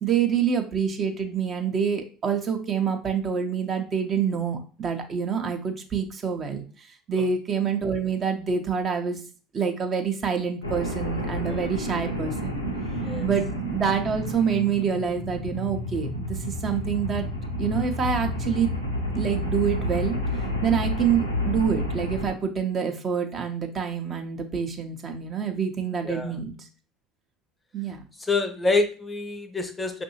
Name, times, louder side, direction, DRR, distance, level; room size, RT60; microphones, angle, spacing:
voice 1, 0.0-6.6 7.1-9.2 9.5-12.6 13.2-17.3 17.6-18.7 19.1-20.2 20.6-26.5 27.7-28.0, right 7 dB, 35° right, 4 dB, 0.7 m, -26 dB
sound 1, 10.6-22.3, left 1 dB, 85° left, 0.6 m, -30 dB
voice 2, 26.0-26.3 28.2-30.0, left 3 dB, 20° left, 7 dB, 0.6 m, -27 dB
5.3 x 2.6 x 2.8 m, 0.37 s
figure-of-eight pair, 65°, 0 cm